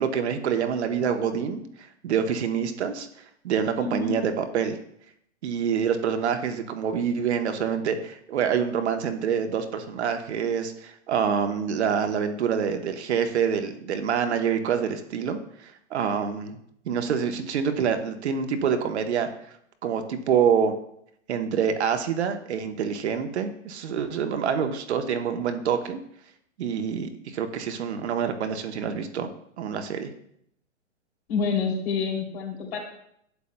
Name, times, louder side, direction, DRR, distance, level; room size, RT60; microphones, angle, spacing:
voice 1, 0.0-1.6 2.0-3.1 3.4-4.8 5.4-16.6 16.9-19.3 19.8-20.7 21.3-26.0 26.6-29.3 29.6-30.1, right 7 dB, 60° right, 7 dB, 1.0 m, -26 dB
voice 2, 3.8-4.2 31.3-32.8, left 5 dB, 55° left, 0 dB, 2.9 m, -27 dB
11.5 x 8.2 x 2.2 m, 0.71 s
hypercardioid pair, 125°, 37 cm